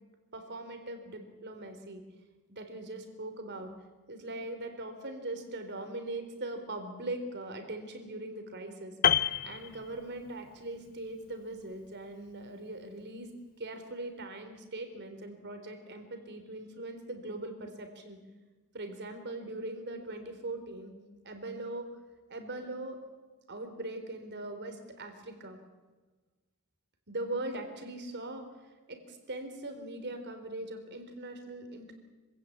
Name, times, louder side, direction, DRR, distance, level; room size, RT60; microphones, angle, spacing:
voice 1, 0.3-2.0 2.5-3.7 4.1-13.3 13.6-18.2 18.7-20.9 21.2-21.9 22.3-23.0 23.5-25.6 27.1-31.9, right 2 dB, 50° right, 7 dB, 3.8 m, -41 dB
Piano, 9.0-10.5 10.8-11.0, left 9 dB, 40° left, 0.6 m, -28 dB
25.5 x 17.0 x 8.5 m, 1.3 s
head